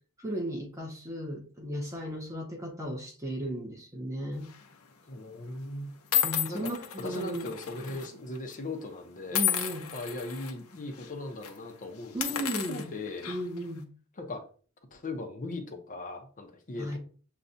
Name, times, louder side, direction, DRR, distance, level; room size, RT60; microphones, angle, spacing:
voice 1, 0.2-4.5 6.2-7.5 7.9-8.0 9.3-9.9 12.1-12.8 13.3-13.9 16.8-17.0, equal, 15° right, 0.8 m, -35 dB
sound 1, 4.4-4.7 5.5-5.6 6.1-8.1 8.3-8.5 9.3-10.5 10.9-11.1 11.4-11.6 12.1-13.6, left 9 dB, 75° left, 0.7 m, -32 dB
voice 2, 5.1-5.9 6.5-6.6 7.0-9.4 9.9-13.3 14.2-14.5 14.9-17.0, left 2 dB, 40° left, 0.7 m, -39 dB
6.7 x 2.3 x 2.6 m
head